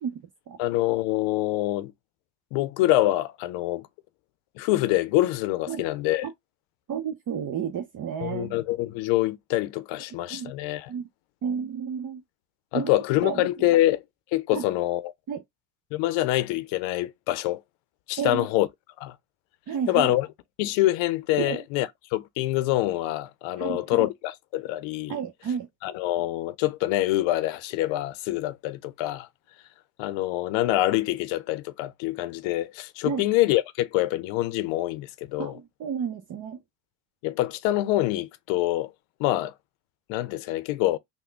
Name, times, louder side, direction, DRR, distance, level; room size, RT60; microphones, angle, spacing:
voice 1, 0.0-0.6 5.7-5.8 6.2-6.3 6.9-8.6 10.3-10.5 10.9-11.1 11.4-12.2 12.7-13.5 14.5-14.6 15.3-15.4 18.2-18.5 19.7-20.1 21.4-21.6 23.6-24.1 25.1-25.7 33.0-33.2 35.4-36.6, right 7 dB, 40° right, 0.7 m, -31 dB
voice 2, 0.6-1.9 2.5-3.9 4.6-6.3 8.2-10.9 12.7-14.0 14.3-15.1 15.9-17.6 18.1-18.7 19.0-19.2 19.9-20.3 20.6-25.2 25.8-29.3 30.0-35.6 37.2-38.9 39.2-39.5 40.1-41.0, left 15 dB, 70° left, 0.6 m, -25 dB
3.6 x 2.2 x 3.3 m
supercardioid pair, 75°, 47 cm